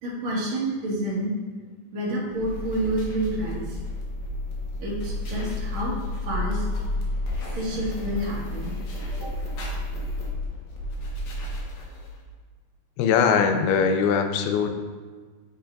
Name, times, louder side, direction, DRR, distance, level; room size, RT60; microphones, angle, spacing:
voice 1, 0.0-1.3 1.9-3.8 4.8-6.6 7.5-8.7 9.2-9.3, right 1 dB, 50° right, -6 dB, 2.8 m, -29 dB
sound 1, 2.3-12.2, left 1 dB, 65° left, 2.0 m, -31 dB
voice 2, 13.0-14.7, left 6 dB, 90° left, 6 dB, 2.5 m, -21 dB
9.0 x 7.0 x 2.6 m, 1.5 s
omnidirectional pair, 4.3 m